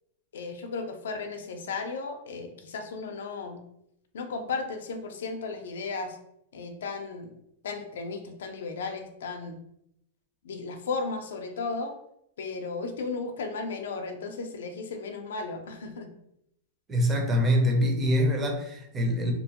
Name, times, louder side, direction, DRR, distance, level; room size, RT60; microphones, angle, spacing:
voice 1, 0.3-3.6 4.1-6.2 6.5-7.3 7.6-9.6 10.4-12.0 12.4-16.1, left 4 dB, 90° left, 5 dB, 0.5 m, -35 dB
voice 2, 16.9-19.3, equal, 15° right, 1 dB, 0.5 m, -24 dB
2.8 x 2.1 x 2.8 m, 0.78 s
supercardioid pair, 165°, 0 cm